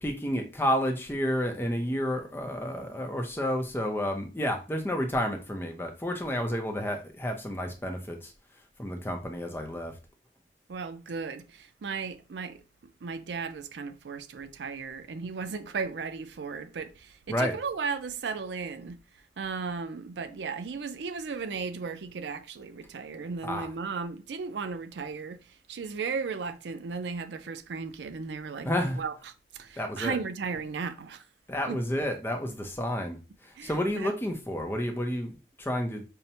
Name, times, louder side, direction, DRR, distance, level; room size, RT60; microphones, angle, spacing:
voice 1, 0.0-8.3 8.8-9.9 17.3-17.6 23.4-23.7 28.6-29.0 29.8-30.2 31.5-36.0, equal, 15° left, 0.5 m, -30 dB
voice 2, 10.7-12.6 13.0-19.0 19.4-25.4 25.7-28.7 29.0-31.2 31.7-31.8 33.6-34.1, right 5 dB, 85° right, 0.4 m, -35 dB
5.5 x 2.1 x 2.7 m
head